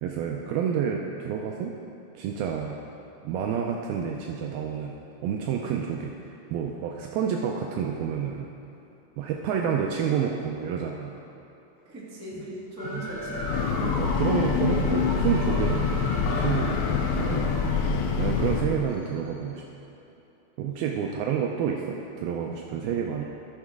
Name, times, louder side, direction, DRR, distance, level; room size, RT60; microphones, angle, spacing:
voice 1, 0.0-1.8 2.1-2.8 3.2-5.0 5.2-8.5 9.2-11.3 12.3-12.4 12.9-13.1 13.8-16.0 16.4-17.7 17.9-19.6 20.6-23.3, right 7 dB, 80° right, 1 dB, 2.2 m, -29 dB
voice 2, 11.8-13.7, right 1 dB, 10° right, -7 dB, 1.0 m, -39 dB
sound 1, 12.8-19.4, equal, 15° left, 1.3 m, -37 dB
Breathing / Train, 13.2-18.9, left 6 dB, 85° left, 2.9 m, -26 dB
16.5 x 6.6 x 4.8 m, 2.9 s
omnidirectional pair, 4.9 m